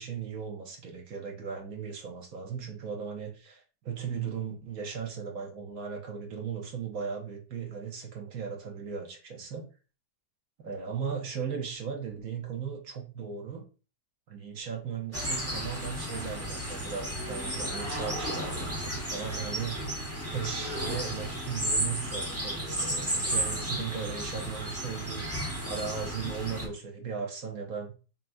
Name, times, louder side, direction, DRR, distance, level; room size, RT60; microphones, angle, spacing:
voice 1, 0.0-9.6 10.6-13.6 14.3-19.8 20.3-27.9, right 6 dB, 65° right, 2 dB, 1.1 m, -37 dB
sound 1, 15.1-26.7, right 1 dB, 10° right, 0.7 m, -33 dB
5.4 x 2.3 x 2.5 m, 0.36 s
omnidirectional pair, 1.8 m